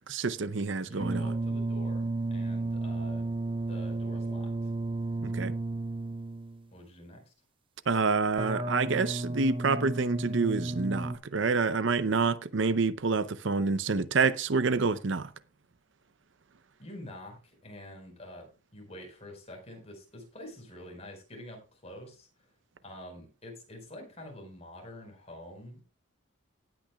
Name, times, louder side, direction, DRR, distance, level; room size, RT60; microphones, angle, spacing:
voice 1, 0.1-1.3 5.2-5.5 7.9-15.3, right 4 dB, 60° right, 0.6 m, -28 dB
voice 2, 0.8-3.3 3.7-4.7 6.7-7.3 16.8-22.5 22.8-25.8, left 1 dB, 30° left, 4.8 m, -47 dB
sound 1, 1.0-6.6 8.4-11.2, right 2 dB, 25° right, 0.6 m, -33 dB
18.5 x 9.1 x 2.3 m
head